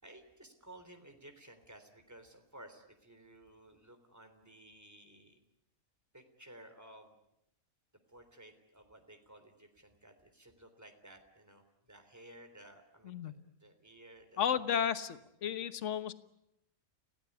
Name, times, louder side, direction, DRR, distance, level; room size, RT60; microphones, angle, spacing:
voice 1, 0.0-5.4 6.1-7.2 8.1-13.3 13.6-14.6, right 1 dB, 10° right, 6 dB, 3.5 m, -56 dB
voice 2, 14.4-16.1, left 8 dB, 55° left, 12 dB, 1.5 m, -33 dB
29.5 x 18.5 x 9.7 m, 0.83 s
omnidirectional pair, 1.5 m